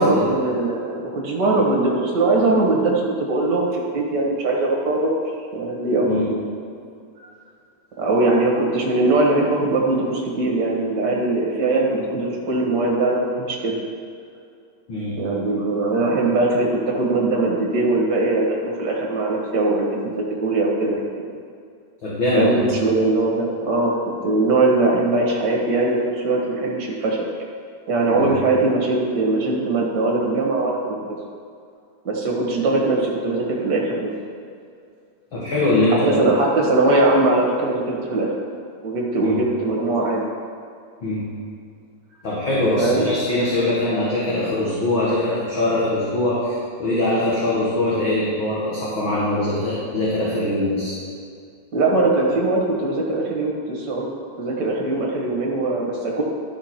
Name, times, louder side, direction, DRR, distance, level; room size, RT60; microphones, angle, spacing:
voice 1, 0.0-5.2 5.5-6.4 7.2-7.3 8.0-13.8 15.2-21.0 22.3-27.2 27.9-31.1 32.0-34.1 36.1-38.3 38.8-40.2 42.8-43.1 51.7-54.1 54.4-56.2, right 2 dB, 40° right, -2 dB, 1.8 m, -21 dB
voice 2, 22.0-22.5 28.1-28.3 35.3-36.2 39.2-39.4 41.0-41.2 42.2-50.9, left 1 dB, 45° left, -8 dB, 2.1 m, -22 dB
12.5 x 6.0 x 4.4 m, 2.3 s
omnidirectional pair, 3.4 m